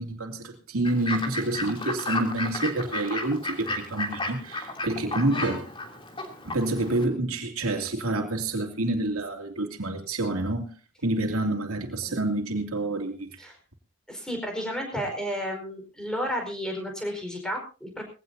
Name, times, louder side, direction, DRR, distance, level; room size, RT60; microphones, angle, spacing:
voice 1, 0.0-5.7 6.4-10.7 11.0-13.4, right 2 dB, 85° right, 2.8 m, -28 dB
Fowl / Bird, 0.8-7.0, left 2 dB, 25° left, 3.0 m, -33 dB
voice 2, 14.1-18.0, equal, 5° left, 4.8 m, -32 dB
21.0 x 17.0 x 2.7 m
head